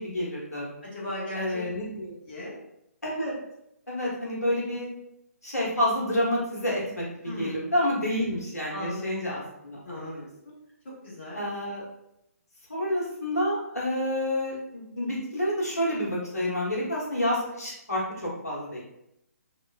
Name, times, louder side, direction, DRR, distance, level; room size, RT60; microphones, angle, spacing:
voice 1, 0.0-0.7 1.4-2.1 3.0-3.3 3.9-4.9 5.4-10.3 11.3-11.8 12.7-18.8, left 1 dB, 70° left, -5 dB, 1.1 m, -29 dB
voice 2, 0.8-1.6 2.3-2.6 7.2-7.6 8.7-9.0 9.8-10.3 11.0-11.4, left 1 dB, 35° left, -7 dB, 1.0 m, -36 dB
3.1 x 3.0 x 2.3 m, 0.82 s
figure-of-eight pair, 140°, 9 cm